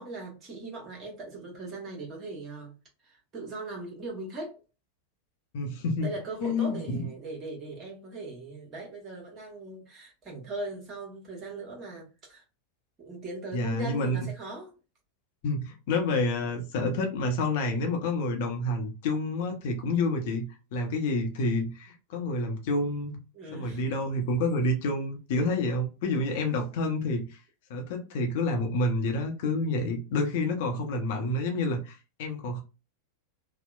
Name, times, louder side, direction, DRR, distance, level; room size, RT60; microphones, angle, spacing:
voice 1, 0.0-2.7 3.0-4.6 6.0-12.4 13.0-14.7 23.3-23.9, right 2 dB, 30° right, 1.2 m, -39 dB
voice 2, 5.5-7.1 13.5-14.2 15.4-23.1 23.5-27.4 27.7-32.6, left 2 dB, 50° left, 0.6 m, -29 dB
2.8 x 2.0 x 2.3 m
figure-of-eight pair, 90°, 0 cm